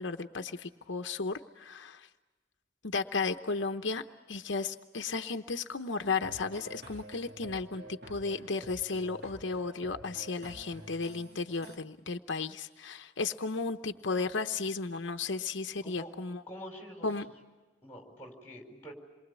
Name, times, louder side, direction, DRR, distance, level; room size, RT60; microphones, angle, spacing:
voice 1, 0.0-2.1 2.8-16.4 17.0-17.3, left 4 dB, 80° left, 6 dB, 0.9 m, -34 dB
sound 1, 6.2-11.8, right 1 dB, 55° right, 2.2 m, -49 dB
voice 2, 15.8-16.1 16.5-17.3 17.8-18.9, equal, 10° left, 2 dB, 5.1 m, -46 dB
28.0 x 23.0 x 8.3 m, 1.2 s
head